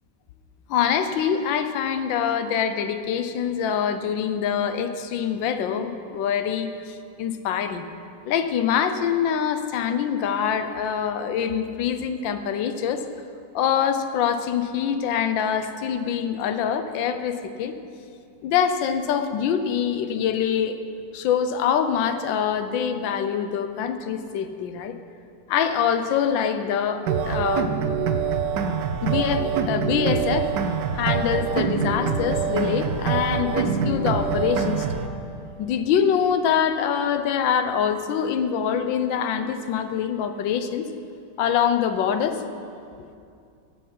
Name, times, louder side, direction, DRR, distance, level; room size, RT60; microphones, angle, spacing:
voice 1, 0.7-6.7 7.2-7.8 8.3-13.0 13.5-17.7 18.4-20.8 21.1-24.9 25.5-27.7 29.0-30.5 30.9-34.9 35.6-40.9 41.4-42.4, left 8 dB, 90° left, 9 dB, 1.5 m, -24 dB
sound 1, 27.1-35.1, right 6 dB, 70° right, 1.4 m, -25 dB
17.5 x 6.8 x 5.5 m, 2.5 s
omnidirectional pair, 2.0 m